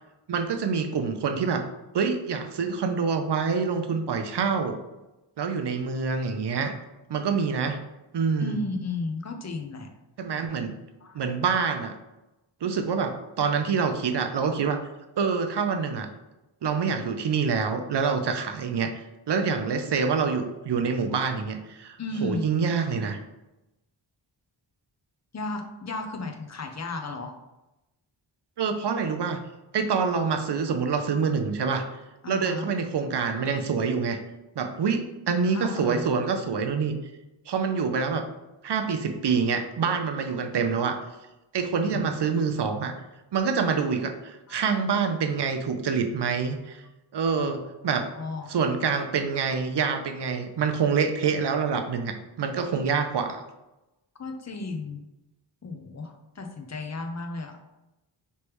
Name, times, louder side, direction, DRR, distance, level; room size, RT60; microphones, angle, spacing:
voice 1, 0.3-1.7 1.9-4.8 5.4-6.8 7.1-7.8 8.1-8.6 10.2-10.7 11.1-11.9 12.6-14.8 15.2-16.1 16.6-23.2 28.6-29.4 29.7-31.9 32.3-34.2 34.6-37.0 37.5-38.3 38.6-41.0 41.5-42.9 43.3-46.8 47.1-48.1 48.5-53.4, right 5 dB, 60° right, 7 dB, 0.6 m, -26 dB
voice 2, 8.4-9.9 11.0-11.2 22.0-22.4 25.3-27.3 32.2-32.7 35.5-36.1 41.9-42.1 44.5-44.6 47.3-47.6 48.0-48.5 54.2-55.0 55.6-57.6, left 2 dB, 35° left, 4 dB, 0.6 m, -34 dB
3.3 x 3.1 x 3.0 m, 0.97 s
cardioid pair, 55°, 48 cm